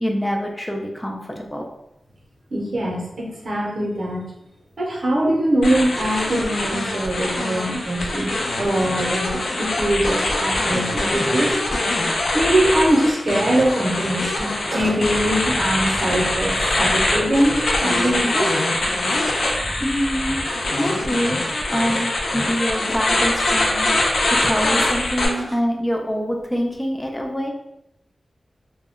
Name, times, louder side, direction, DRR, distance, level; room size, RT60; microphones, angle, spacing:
voice 1, 0.0-1.6 19.1-19.5 19.8-20.4 20.7-21.4 21.7-27.5, equal, 10° left, 0 dB, 0.4 m, -25 dB
voice 2, 2.5-4.3 4.8-11.6 12.3-18.6 25.4-25.5, right 1 dB, 65° right, -2 dB, 0.7 m, -22 dB
sound 1, 5.6-25.3, left 2 dB, 80° left, 0.4 m, -23 dB
2.2 x 2.0 x 3.5 m, 0.85 s
wide cardioid pair, 95°, 0 cm